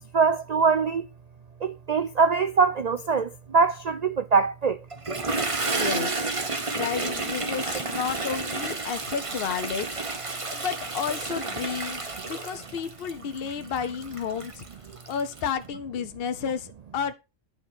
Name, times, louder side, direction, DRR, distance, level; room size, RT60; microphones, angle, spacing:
voice 1, 0.1-1.0 1.6-4.8, right 5 dB, 65° right, 0.4 m, -23 dB
Toilet flush, 4.9-15.5, right 3 dB, 25° right, 1.1 m, -31 dB
voice 2, 5.7-6.3 6.7-9.9 10.5-14.6 15.1-17.1, left 7 dB, 50° left, 1.0 m, -32 dB
10.5 x 4.8 x 5.4 m
omnidirectional pair, 1.3 m